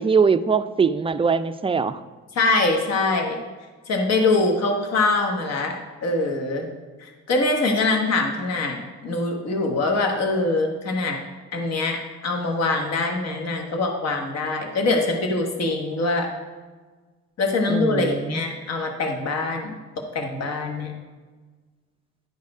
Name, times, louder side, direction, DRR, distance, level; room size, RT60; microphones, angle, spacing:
voice 1, 0.0-2.0 17.7-18.4, right 5 dB, 20° right, 12 dB, 0.3 m, -22 dB
voice 2, 2.3-3.4 3.9-6.7 7.0-11.2 11.5-12.0 12.2-16.3 17.4-19.7 20.1-20.9, left 3 dB, 60° left, 2 dB, 1.3 m, -23 dB
11.0 x 4.1 x 4.9 m, 1.4 s
cardioid pair, 90°, 30 cm